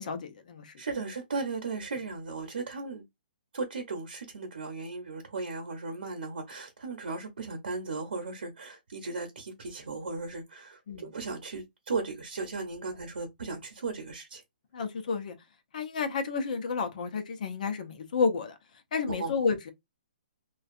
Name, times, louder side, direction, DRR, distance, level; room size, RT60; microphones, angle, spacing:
voice 1, 0.0-0.7 10.9-11.1 14.7-15.4 15.7-18.5 18.9-19.7, left 5 dB, 55° left, 0.7 m, -31 dB
voice 2, 0.8-3.0 3.5-14.4 19.1-19.3, right 4 dB, 90° right, 0.7 m, -36 dB
2.5 x 2.3 x 2.4 m
hypercardioid pair, 160°, 5 cm